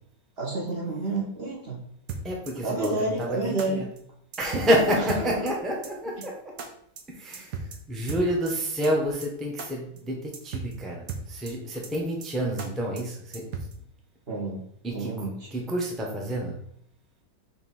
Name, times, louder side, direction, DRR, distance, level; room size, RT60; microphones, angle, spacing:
voice 1, 0.4-1.8 2.6-3.8 5.2-5.3 14.3-14.6 14.9-15.5, right 2 dB, 30° right, -3 dB, 1.7 m, -29 dB
sound 1, 2.1-2.5 2.8-2.9 3.2-3.3 3.6-3.7 4.0-4.1 4.3-4.7 5.1-5.5 5.8-5.9 6.2-6.3 6.6-6.7 7.0-7.1 7.3-7.8 8.1-8.5 8.8-8.9 9.2-9.3 9.6-9.7 10.0-10.1 10.3-10.7 11.1-11.5 11.8-11.9 12.2-12.3 12.6-12.7 13.0-13.1 13.3-13.7, right 5 dB, 65° right, 1.3 m, -35 dB
voice 2, 2.2-3.8 4.4-6.5 7.1-13.5 14.8-15.1 15.5-16.6, equal, ahead, -1 dB, 0.8 m, -28 dB
4.9 x 4.0 x 5.4 m, 0.69 s
omnidirectional pair, 2.1 m